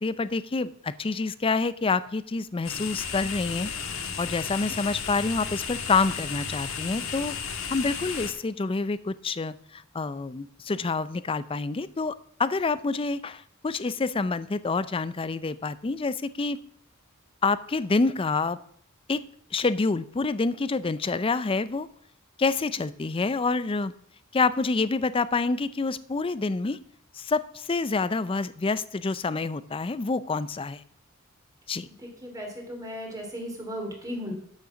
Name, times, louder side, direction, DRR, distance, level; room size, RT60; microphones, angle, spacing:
voice 1, 0.0-3.7 4.2-7.3 7.7-16.6 17.4-18.6 19.1-19.2 19.5-21.9 22.4-23.9 24.3-26.8 27.2-30.8 31.7-31.9, left 3 dB, 25° left, 16 dB, 0.4 m, -27 dB
sound 1, 2.6-8.3, left 6 dB, 75° left, 1.5 m, -34 dB
voice 2, 32.0-34.3, equal, 15° right, 0 dB, 2.8 m, -36 dB
12.0 x 6.6 x 5.9 m, 0.64 s
head